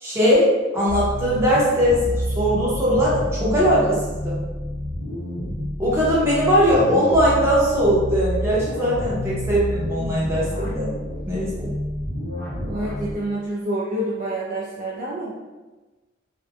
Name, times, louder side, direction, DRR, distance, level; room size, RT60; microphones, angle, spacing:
voice 1, 0.0-2.0 2.3-4.4 5.8-10.9 11.3-11.7, equal, 15° right, -8 dB, 0.7 m, -20 dB
sound 1, 0.9-13.2, equal, 35° left, 1.0 m, -29 dB
voice 2, 12.6-15.3, right 1 dB, 40° right, -6 dB, 0.3 m, -28 dB
2.6 x 2.2 x 2.5 m, 1.2 s
head